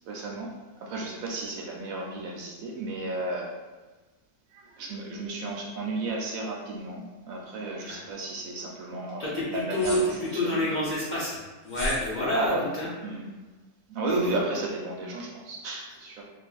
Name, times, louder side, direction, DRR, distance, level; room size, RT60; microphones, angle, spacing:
voice 1, 0.1-0.5 0.8-3.5 4.5-10.7 12.3-12.6 13.0-13.4 13.9-16.2, right 2 dB, 70° right, -1 dB, 0.9 m, -33 dB
voice 2, 9.2-11.4 11.6-12.9 14.1-14.3, left 1 dB, 85° left, -8 dB, 0.4 m, -28 dB
sound 1, 9.7-10.4 11.6-12.1, equal, 35° left, 1.0 m, -35 dB
2.8 x 2.5 x 2.3 m, 1.2 s
omnidirectional pair, 1.7 m